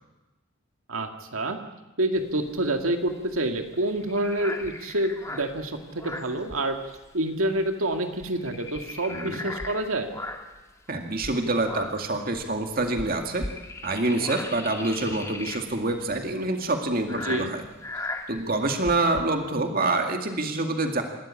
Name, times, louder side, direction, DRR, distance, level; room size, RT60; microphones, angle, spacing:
voice 1, 0.9-1.6 2.0-6.8 7.1-10.1 17.2-17.5, right 1 dB, 90° right, 5 dB, 2.1 m, -27 dB
sound 1, 2.2-7.1 7.4-7.6 7.9-10.6 11.1-19.2, left 2 dB, 15° left, 1.9 m, -38 dB
voice 2, 9.1-9.4 10.9-13.4 13.8-17.6 18.3-21.0, right 2 dB, 45° right, 4 dB, 2.2 m, -26 dB
27.5 x 13.0 x 9.9 m, 1.1 s
head